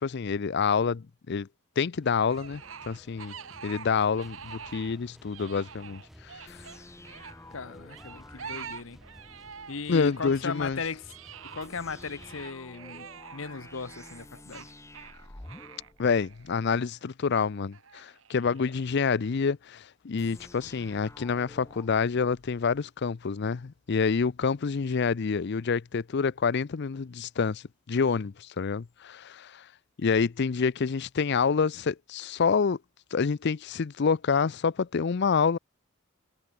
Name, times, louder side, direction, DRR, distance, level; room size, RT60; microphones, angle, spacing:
voice 1, 0.0-1.5 1.8-3.3 3.6-6.6 9.9-10.8 16.0-29.7 30.0-32.8 33.1-35.6, left 5 dB, 55° left, 0.5 m, -27 dB
sound 1, 2.0-12.5, equal, ahead, 1.2 m, -54 dB
sound 2, 2.3-5.0 5.2-7.3 7.9-9.8 10.1-17.1 17.7-19.0, right 7 dB, 75° right, 1.4 m, -46 dB
sound 3, 6.5-9.7 11.6-16.8 20.2-22.8, left 2 dB, 15° left, 0.9 m, -51 dB
voice 2, 7.5-9.0 9.7-11.1 11.5-14.7, left 4 dB, 70° left, 1.1 m, -37 dB
head